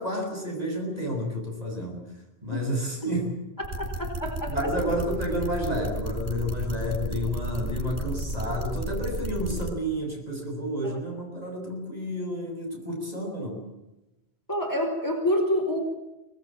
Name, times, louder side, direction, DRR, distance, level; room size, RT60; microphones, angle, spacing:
voice 1, 0.0-2.0 2.4-3.4 4.5-13.6, equal, 35° right, 1 dB, 7.4 m, -30 dB
sound 1, 3.6-9.7, right 1 dB, 75° right, 3.2 m, -32 dB
voice 2, 4.0-4.5 14.5-15.8, equal, 15° left, 3 dB, 4.7 m, -26 dB
24.5 x 19.5 x 9.0 m, 0.98 s
omnidirectional pair, 1.1 m